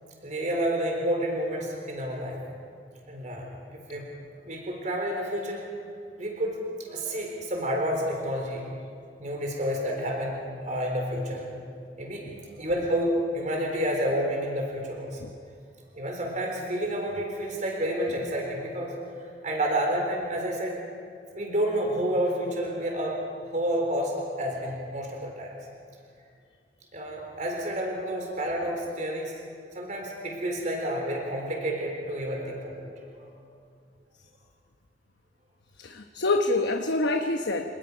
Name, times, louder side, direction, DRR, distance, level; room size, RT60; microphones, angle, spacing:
voice 1, 0.2-2.4 3.1-4.0 4.4-5.6 6.2-8.7 9.2-11.5 12.0-12.2 12.6-15.2 15.9-18.9 19.4-20.7 21.3-23.2 23.5-24.1 24.4-25.5 26.9-29.3 29.7-32.7 33.0-33.3, equal, 45° right, 0 dB, 4.0 m, -29 dB
voice 2, 35.8-37.8, left 2 dB, 75° left, 5 dB, 1.1 m, -26 dB
26.5 x 20.0 x 5.6 m, 2.3 s
head